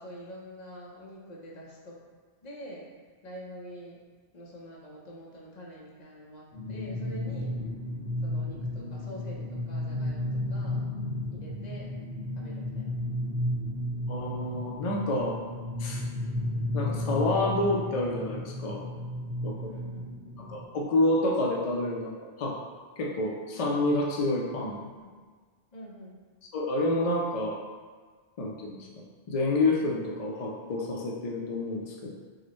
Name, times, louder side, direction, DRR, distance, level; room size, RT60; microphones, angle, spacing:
voice 1, 0.0-2.0 2.4-2.9 3.2-4.0 4.3-7.5 8.2-10.9 11.3-11.9 12.3-12.9 19.5-20.1 24.8-25.2 25.7-26.2, equal, 45° left, -3 dB, 0.7 m, -46 dB
sound 1, 6.5-20.6, left 1 dB, 75° right, 1.4 m, -33 dB
voice 2, 14.1-15.4 15.8-16.0 16.7-18.9 19.4-19.7 20.4-22.1 22.4-22.6 23.0-24.8 26.5-27.6 28.4-32.1, left 2 dB, 70° left, -2 dB, 0.3 m, -28 dB
4.7 x 2.1 x 3.0 m, 1.5 s
omnidirectional pair, 1.2 m